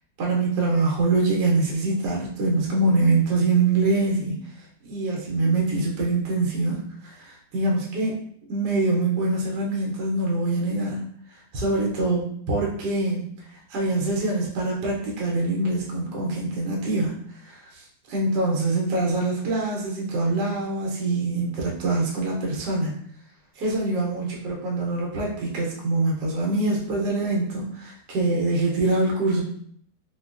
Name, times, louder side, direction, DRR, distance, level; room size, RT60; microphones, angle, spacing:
voice 1, 0.2-4.4 4.8-8.2 8.5-11.0 11.5-12.2 12.5-13.3 13.7-17.1 17.4-17.7 18.1-22.9 23.6-29.4, right 2 dB, 70° right, -3 dB, 1.3 m, -24 dB
3.7 x 2.2 x 2.4 m, 0.63 s
omnidirectional pair, 1.9 m